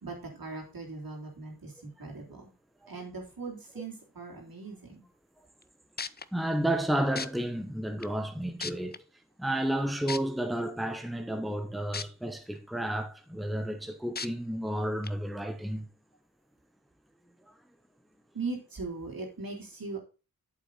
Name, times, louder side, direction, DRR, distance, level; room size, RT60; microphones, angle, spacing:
voice 1, 0.0-2.5 2.9-5.0 18.3-20.0, right 3 dB, 75° right, 3.5 m, -39 dB
sound 1, 5.6-5.7 6.0-6.2 7.2-7.3 8.0-8.1 8.6-9.0 10.1-10.2 11.9-12.0 12.6-12.7 14.2-14.3 15.0-15.1, left 5 dB, 30° left, 0.5 m, -35 dB
voice 2, 6.3-9.0 9.4-15.9, right 1 dB, ahead, 1.0 m, -31 dB
8.5 x 7.2 x 4.0 m
cardioid pair, 45°, 35 cm